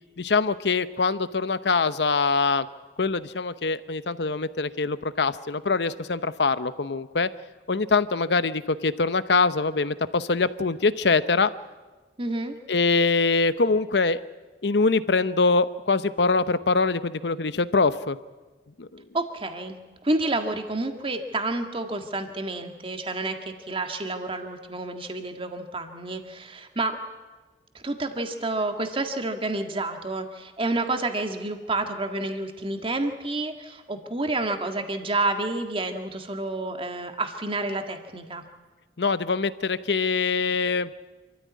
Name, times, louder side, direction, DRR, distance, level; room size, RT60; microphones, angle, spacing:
voice 1, 0.2-2.7 3.0-7.3 7.7-11.5 12.7-14.2 14.6-18.2 18.8-19.0 39.0-40.9, left 4 dB, 75° left, 14 dB, 0.8 m, -23 dB
voice 2, 12.2-12.5 19.1-19.8 20.0-26.9 27.7-38.4, right 2 dB, 30° right, 5 dB, 1.8 m, -29 dB
26.5 x 14.0 x 9.5 m, 1.3 s
head